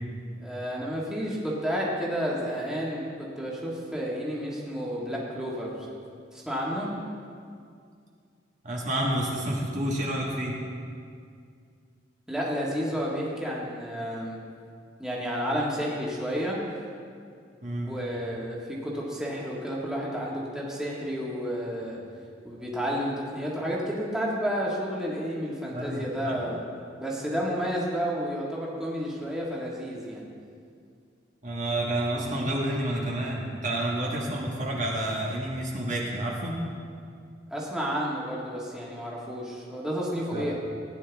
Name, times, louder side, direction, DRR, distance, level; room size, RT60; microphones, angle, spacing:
voice 1, 0.4-5.8 6.3-6.9 12.3-14.4 15.0-16.6 17.9-22.0 22.4-26.6 27.0-30.2 37.5-40.5, equal, 5° right, -5 dB, 1.8 m, -31 dB
voice 2, 8.6-10.5 17.6-18.0 25.7-26.5 31.4-36.5 40.3-40.5, right 1 dB, 40° right, -3 dB, 1.6 m, -29 dB
17.0 x 10.0 x 3.5 m, 2.3 s
head